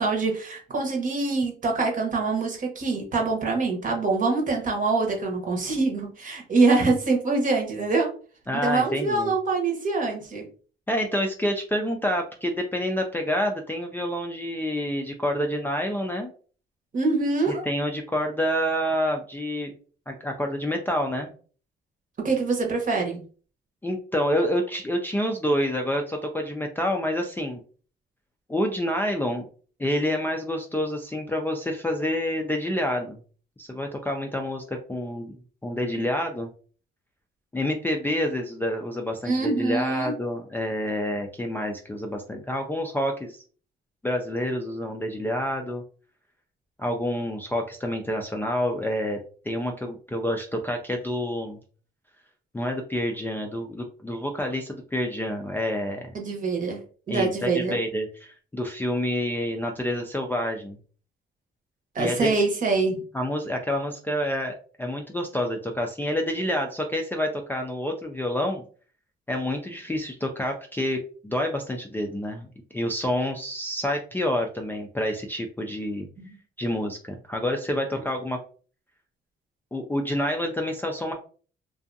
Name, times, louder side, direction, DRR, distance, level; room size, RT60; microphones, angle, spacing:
voice 1, 0.0-8.1 8.5-10.4 16.9-17.7 22.2-23.2 39.2-40.1 56.1-56.8 57.1-57.8 61.9-63.0 76.2-76.4, right 3 dB, 40° right, 2 dB, 0.9 m, -24 dB
voice 2, 8.5-9.3 10.9-16.3 17.5-19.7 20.1-21.3 23.8-27.6 28.5-29.5 29.8-33.2 33.6-35.4 35.6-36.5 37.5-43.4 44.0-45.8 46.8-49.2 49.4-51.6 52.5-56.1 57.1-60.8 62.0-62.4 63.1-68.6 69.3-72.5 72.7-76.1 76.6-78.4 79.7-81.1, left 1 dB, 10° left, 1 dB, 0.4 m, -28 dB
2.5 x 2.3 x 2.5 m, 0.41 s
cardioid pair, 90°, 20 cm